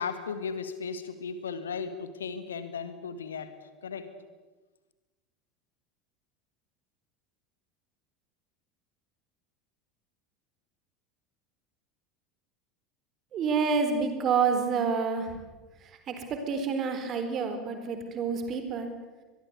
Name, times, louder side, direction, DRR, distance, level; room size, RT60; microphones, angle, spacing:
voice 1, 0.0-3.5 3.8-4.1, left 6 dB, 70° left, 11 dB, 1.9 m, -35 dB
voice 2, 13.3-15.3 16.1-18.9, right 5 dB, 35° right, 7 dB, 4.2 m, -28 dB
24.0 x 22.0 x 8.2 m, 1.2 s
figure-of-eight pair, 75°, 0 cm